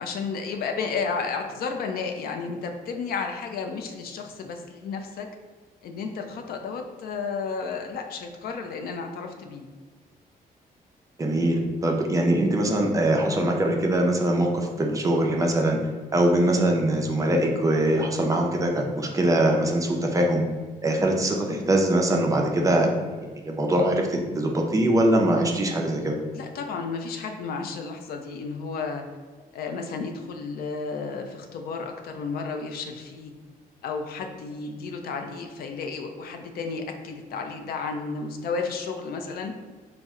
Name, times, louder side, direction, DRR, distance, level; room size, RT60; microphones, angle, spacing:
voice 1, 0.0-5.3 5.8-9.7 26.3-29.0 29.5-33.3 33.8-39.5, left 4 dB, 75° left, 4 dB, 0.4 m, -32 dB
voice 2, 11.2-15.8 16.1-20.4 20.8-22.9 23.4-26.2, right 1 dB, 20° right, 1 dB, 0.4 m, -22 dB
4.2 x 2.0 x 3.5 m, 1.4 s
cardioid pair, 140°, 16 cm